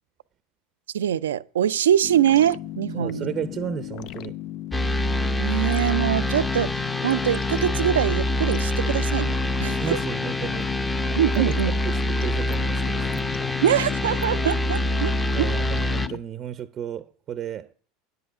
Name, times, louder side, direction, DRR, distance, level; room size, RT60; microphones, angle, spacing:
voice 1, 0.9-3.3 5.4-6.8 7.0-10.0 11.2-11.7 13.6-15.5, right 10 dB, 80° right, 0.4 m, -23 dB
sound 1, 2.0-16.2, left 13 dB, 55° left, 0.4 m, -36 dB
voice 2, 2.9-4.4 9.7-10.7 11.4-13.2 15.3-17.7, right 9 dB, 40° right, 0.6 m, -34 dB
sound 2, 4.7-16.1, left 1 dB, 15° left, 0.7 m, -25 dB
9.4 x 8.1 x 4.9 m
hypercardioid pair, 85°, 0 cm